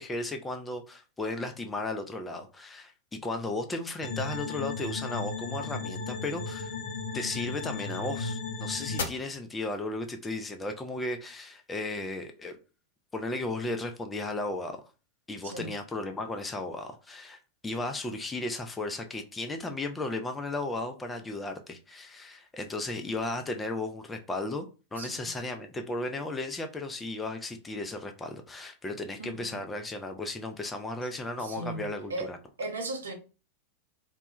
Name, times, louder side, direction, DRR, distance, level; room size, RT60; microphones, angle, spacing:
voice 1, 0.0-6.7 7.1-12.6 13.1-14.8 15.3-32.4, left 2 dB, 15° left, 0.4 m, -35 dB
sound 1, 4.0-9.0, left 4 dB, 60° left, 0.6 m, -35 dB
voice 2, 25.0-25.3 29.2-29.6 31.4-33.1, right 2 dB, 70° right, 0.6 m, -37 dB
2.1 x 2.1 x 2.9 m
figure-of-eight pair, 90°, 0 cm